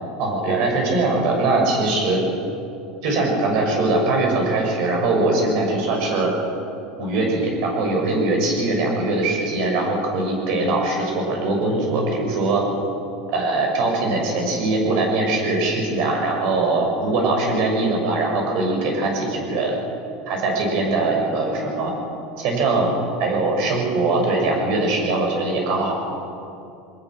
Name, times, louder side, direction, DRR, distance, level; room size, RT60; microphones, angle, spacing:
voice 1, 0.2-2.2 3.0-6.3 7.0-12.6 13.3-19.7 20.3-21.9 22.4-25.9, right 2 dB, 55° right, 0 dB, 6.5 m, -21 dB
23.0 x 20.5 x 6.4 m, 2.7 s
cardioid pair, 170°, 0 cm